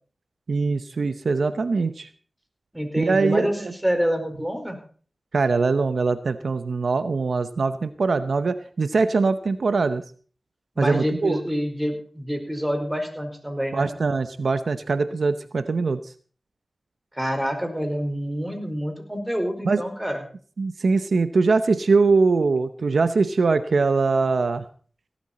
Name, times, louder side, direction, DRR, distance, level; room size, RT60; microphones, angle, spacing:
voice 1, 0.5-2.1 3.0-3.7 5.3-10.0 10.8-11.4 13.7-16.0 19.6-19.8 20.6-24.6, right 4 dB, 80° right, 12 dB, 0.8 m, -22 dB
voice 2, 2.7-4.8 10.8-13.9 17.1-20.2, equal, 10° right, 5 dB, 4.9 m, -27 dB
17.0 x 12.5 x 4.3 m, 0.42 s
cardioid pair, 40°, 0 cm